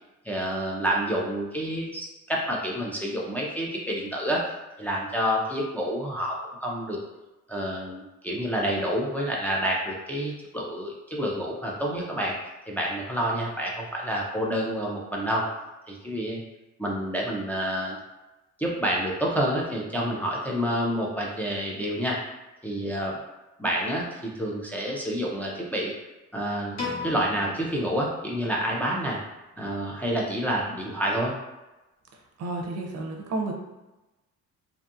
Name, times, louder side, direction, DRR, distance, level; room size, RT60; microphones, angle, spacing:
voice 1, 0.2-4.4 4.8-7.0 7.5-12.3 12.7-15.5 15.9-16.4 16.8-18.0 18.6-22.2 22.6-23.1 23.6-25.9 26.3-26.8 27.0-29.2 29.6-31.3, equal, 5° left, -4 dB, 0.4 m, -28 dB
Piano, 26.8-29.0, left 4 dB, 65° left, 1.1 m, -37 dB
voice 2, 32.4-33.5, right 2 dB, 55° right, 0 dB, 0.6 m, -31 dB
2.6 x 2.3 x 2.6 m, 1.0 s
cardioid pair, 90°, 30 cm